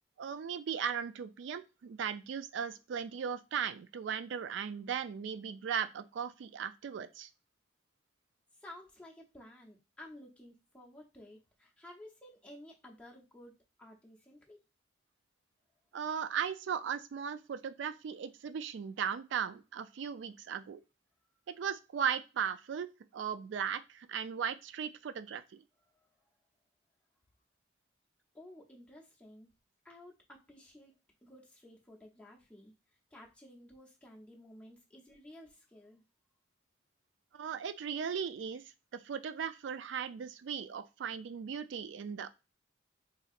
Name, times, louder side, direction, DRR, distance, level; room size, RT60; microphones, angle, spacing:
voice 1, 0.2-7.3 15.9-20.8 21.5-25.6 37.3-38.6 38.9-42.3, right 7 dB, 75° right, 12 dB, 0.3 m, -37 dB
voice 2, 8.5-14.6 25.9-26.4 28.3-29.5 29.8-31.0 31.2-32.7 33.1-36.0, left 1 dB, 5° left, -2 dB, 0.7 m, -54 dB
4.0 x 2.7 x 2.4 m, 0.28 s
head